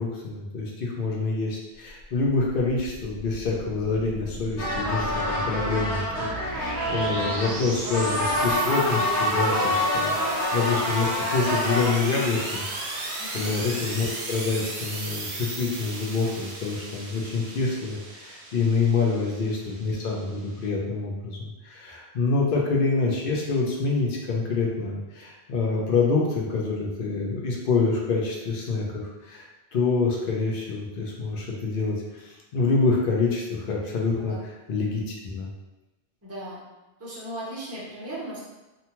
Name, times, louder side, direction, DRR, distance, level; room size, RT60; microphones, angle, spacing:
voice 1, 0.0-6.0 6.4-10.1 10.5-12.6 13.0-29.4 29.7-34.4 34.7-35.5, left 4 dB, 60° left, -2 dB, 0.7 m, -26 dB
sound 1, 2.0-20.6, right 2 dB, 80° right, 0.8 m, -35 dB
sound 2, 4.6-11.9, left 1 dB, 20° left, 0.5 m, -27 dB
voice 2, 36.2-36.6 37.0-38.4, right 1 dB, 15° right, -8 dB, 0.7 m, -37 dB
2.7 x 2.2 x 2.8 m, 1.1 s
omnidirectional pair, 1.1 m